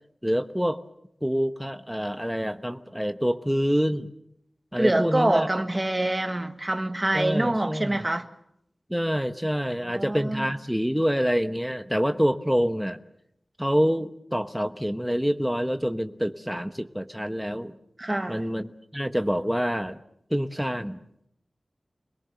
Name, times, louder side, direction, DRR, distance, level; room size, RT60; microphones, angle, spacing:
voice 1, 0.2-0.8 1.2-4.1 4.7-5.5 7.1-8.0 8.9-13.0 13.6-17.7 18.3-20.0 20.3-21.0, equal, ahead, 8 dB, 1.0 m, -26 dB
voice 2, 4.8-8.3 9.8-10.5 18.0-18.4, right 1 dB, 25° right, 8 dB, 1.5 m, -25 dB
27.0 x 21.5 x 6.8 m, 0.76 s
wide cardioid pair, 80°, 0 cm